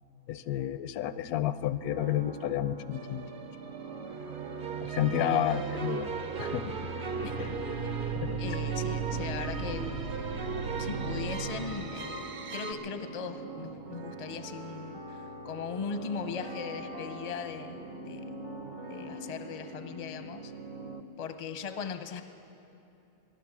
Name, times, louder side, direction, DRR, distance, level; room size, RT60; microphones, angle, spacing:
voice 1, 0.3-3.2 4.8-6.8 7.4-7.5 8.1-8.4, left 11 dB, 80° left, 13 dB, 1.1 m, -31 dB
sound 1, 1.8-21.0, right 6 dB, 65° right, 0.4 m, -45 dB
sound 2, 2.9-12.7, right 5 dB, 40° right, 0.9 m, -35 dB
voice 2, 8.4-9.9 10.8-18.2 18.9-20.5 21.2-22.2, left 6 dB, 40° left, 9 dB, 0.5 m, -39 dB
sound 3, 8.9-21.5, left 4 dB, 85° right, 3.4 m, -47 dB
21.5 x 11.0 x 6.1 m, 2.9 s
omnidirectional pair, 1.6 m